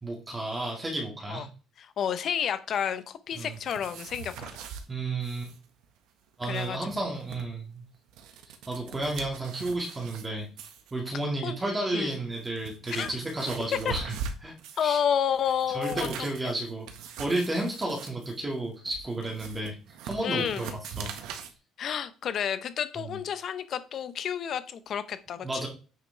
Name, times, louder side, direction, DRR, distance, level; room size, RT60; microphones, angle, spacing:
voice 1, 0.0-1.5 3.4-3.6 4.9-5.5 6.4-7.8 8.5-10.5 10.9-14.1 14.4-14.5 14.8-15.0 15.7-16.9 17.2-19.8 20.0-20.7 21.0-21.2 23.0-23.2 25.4-25.7, right 2 dB, 15° right, 0 dB, 2.1 m, -32 dB
voice 2, 1.8-4.6 6.5-6.8 11.4-11.6 11.9-12.2 12.9-13.1 13.8-13.9 14.8-16.5 20.2-20.8 21.8-25.6, left 8 dB, 40° left, 12 dB, 0.8 m, -30 dB
sound 1, 3.3-4.8 5.2-5.6 5.8-5.9 6.3-7.4 7.9-10.3 10.6-10.9 11.7-11.8 12.3-15.0 15.3-21.5, right 6 dB, 85° right, 1.5 m, -42 dB
9.6 x 6.7 x 3.4 m, 0.35 s
cardioid pair, 160°, 0 cm